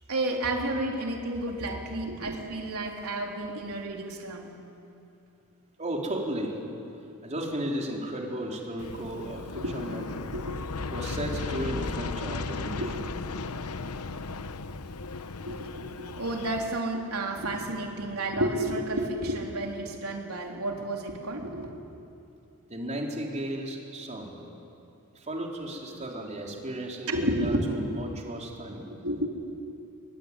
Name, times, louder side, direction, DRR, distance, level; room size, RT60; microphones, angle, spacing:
voice 1, 0.1-4.5 9.5-9.8 10.3-10.6 12.8-13.0 15.5-15.7 16.0-21.7 27.1-27.6 28.9-29.3, right 1 dB, 75° right, 1 dB, 3.7 m, -31 dB
voice 2, 5.8-6.6 7.2-10.3 10.9-12.9 22.7-24.4 25.1-28.8, right 1 dB, 30° right, -1 dB, 4.2 m, -34 dB
Aircraft, 8.8-16.8, left 3 dB, 80° left, 1.0 m, -36 dB
24.0 x 23.5 x 10.0 m, 2.7 s
head